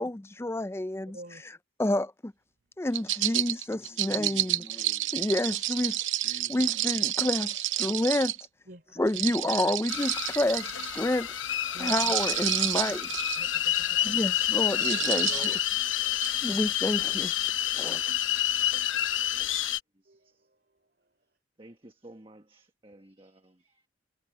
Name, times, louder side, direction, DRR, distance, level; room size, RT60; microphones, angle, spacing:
voice 1, 0.0-1.2 1.8-2.3 2.8-8.3 9.0-11.3 11.8-13.1 14.0-15.6 16.4-17.3 17.7-18.0, left 1 dB, 15° left, 0.4 m, -29 dB
sound 1, 2.9-8.4 9.1-11.0 11.7-13.4 14.0-14.2 14.7-15.6 16.2-16.3, right 14 dB, 85° right, 0.8 m, -30 dB
voice 2, 6.2-6.6 19.3-19.5 20.0-20.4 21.6-23.8, right 1 dB, 25° right, 1.4 m, -53 dB
voice 3, 8.7-9.0 11.7-11.9 12.6-12.8 13.4-14.4 16.5-16.6 17.8-18.0 20.1-20.6, right 1 dB, 50° right, 3.6 m, -49 dB
sound 2, 9.9-19.8, left 12 dB, 85° left, 1.0 m, -29 dB
sound 3, 10.4-16.4, left 3 dB, 45° left, 4.5 m, -56 dB
head